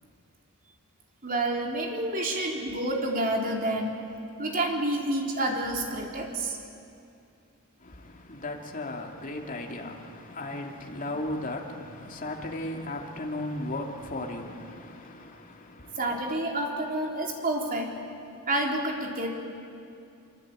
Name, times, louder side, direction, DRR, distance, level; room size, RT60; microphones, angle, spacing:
voice 1, 1.2-4.0 4.4-6.6 16.0-17.9 18.5-19.3, right 1 dB, 40° right, 3.6 m, -29 dB
voice 2, 7.8-16.0, left 1 dB, 35° left, 2.6 m, -36 dB
25.5 x 24.5 x 9.0 m
head